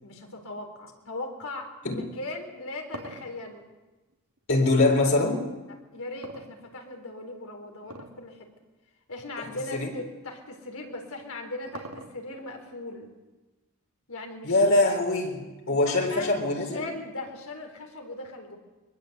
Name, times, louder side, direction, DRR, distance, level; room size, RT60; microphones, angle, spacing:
voice 1, 0.0-3.7 5.9-8.5 9.1-13.1 14.1-14.8 15.7-18.6, left 2 dB, 80° left, 2 dB, 4.1 m, -39 dB
sound 1, 2.4-4.8 6.2-7.1 7.8-8.3 8.6-8.7 9.5-9.6 10.9-12.4, right 3 dB, 90° right, 2.5 m, -43 dB
voice 2, 4.5-5.4 9.8-9.9 14.4-15.4 15.7-16.8, left 2 dB, 65° left, 0 dB, 4.2 m, -23 dB
23.0 x 20.5 x 8.1 m, 1.2 s
head